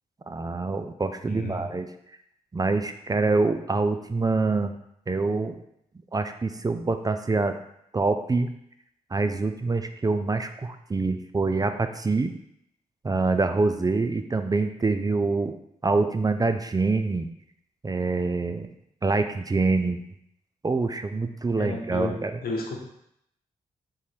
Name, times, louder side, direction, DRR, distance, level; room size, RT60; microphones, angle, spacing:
voice 1, 0.3-1.9 2.5-4.7 5.1-5.6 6.1-7.6 7.9-8.5 9.1-12.3 13.0-15.5 15.8-17.3 17.8-18.7 19.0-20.0 20.6-22.4, right 3 dB, 25° right, 8 dB, 0.4 m, -25 dB
voice 2, 1.3-1.6 21.6-22.8, left 3 dB, 75° left, 0 dB, 0.9 m, -32 dB
3.8 x 3.1 x 4.2 m, 0.75 s
supercardioid pair, 45°, 16 cm